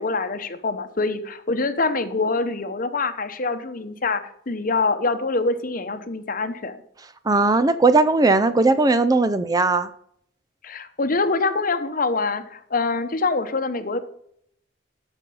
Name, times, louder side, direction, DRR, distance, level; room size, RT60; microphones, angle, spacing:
voice 1, 0.0-6.8 10.6-14.0, left 3 dB, 45° left, 10 dB, 0.9 m, -25 dB
voice 2, 7.3-9.9, right 3 dB, 20° right, 12 dB, 0.4 m, -18 dB
13.0 x 5.4 x 5.4 m, 0.70 s
head